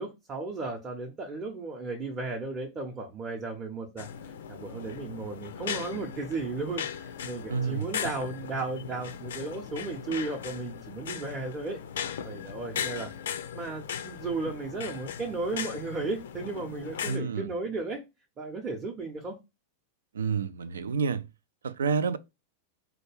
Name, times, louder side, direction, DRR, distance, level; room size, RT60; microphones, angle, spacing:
voice 1, 0.0-11.8 12.2-13.1 13.5-18.0 18.4-19.4, right 3 dB, 25° right, 0.7 m, -35 dB
sound 1, 4.0-17.2, left 8 dB, 60° left, 0.4 m, -38 dB
voice 2, 7.5-7.9 17.1-17.5 20.1-21.2 21.6-22.2, right 6 dB, 65° right, 0.3 m, -29 dB
4.2 x 2.3 x 3.2 m
figure-of-eight pair, 90°, 0 cm